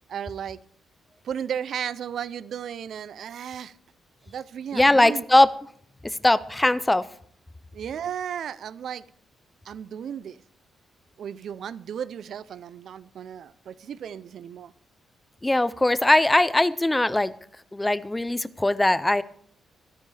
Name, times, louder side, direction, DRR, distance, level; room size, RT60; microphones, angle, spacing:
voice 1, 0.1-0.6 1.2-3.8 4.2-5.2 7.7-9.0 9.6-10.4 11.2-14.7, right 8 dB, 55° right, 18 dB, 0.5 m, -34 dB
voice 2, 4.7-5.5 6.0-7.0 15.4-17.3 17.7-19.2, left 1 dB, 10° left, 16 dB, 0.4 m, -20 dB
24.0 x 10.0 x 3.3 m, 0.62 s
wide cardioid pair, 175°, 0 cm